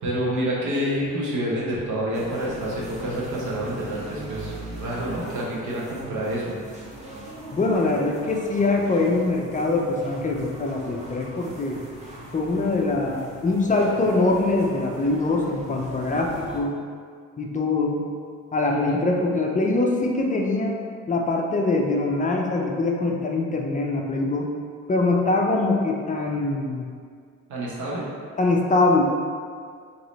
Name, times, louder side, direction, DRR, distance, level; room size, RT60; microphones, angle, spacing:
voice 1, 0.0-6.6 18.7-19.0 27.5-28.1, equal, 75° right, -5 dB, 1.1 m, -28 dB
sound 1, 2.1-16.6, right 1 dB, 20° right, 1.0 m, -40 dB
voice 2, 7.5-11.8 12.3-16.7 17.4-18.0 18.5-20.7 21.1-24.5 24.9-26.9 28.4-29.0, left 2 dB, 25° left, 0 dB, 0.5 m, -23 dB
3.0 x 2.9 x 4.0 m, 2.1 s
cardioid pair, 90°, 30 cm